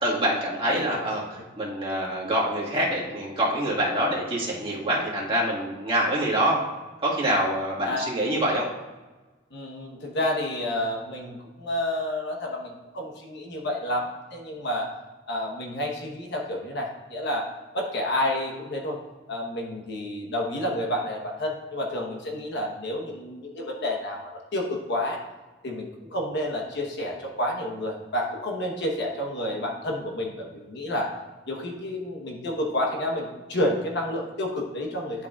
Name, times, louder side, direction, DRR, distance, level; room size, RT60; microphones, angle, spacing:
voice 1, 0.0-6.6 7.0-8.7, right 1 dB, 30° right, -5 dB, 1.7 m, -25 dB
voice 2, 9.5-14.9 15.3-17.5 17.7-19.0 19.3-25.2 25.6-31.1 31.5-35.3, left 1 dB, 65° left, 0 dB, 1.1 m, -30 dB
10.5 x 5.4 x 2.4 m, 1.2 s
head